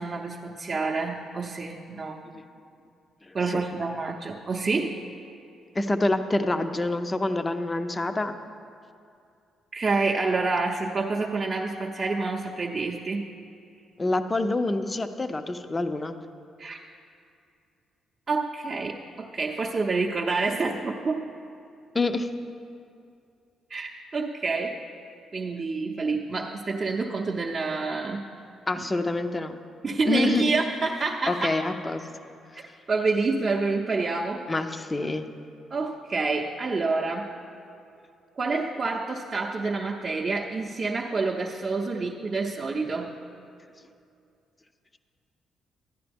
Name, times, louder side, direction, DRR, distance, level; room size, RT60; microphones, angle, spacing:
voice 1, 0.0-2.2 3.3-5.0 9.7-13.2 16.6-16.8 18.3-21.3 23.7-24.8 25.3-28.3 28.7-28.9 29.8-31.6 32.9-34.4 35.7-37.3 38.4-43.1, right 3 dB, 35° right, -1 dB, 0.6 m, -28 dB
voice 2, 3.3-3.6 5.8-8.3 14.0-16.2 21.9-22.3 28.7-29.6 30.1-30.4 31.3-32.0 34.5-35.2, left 2 dB, 20° left, 9 dB, 0.5 m, -27 dB
12.0 x 9.6 x 3.5 m, 2.5 s
cardioid pair, 90°, 0 cm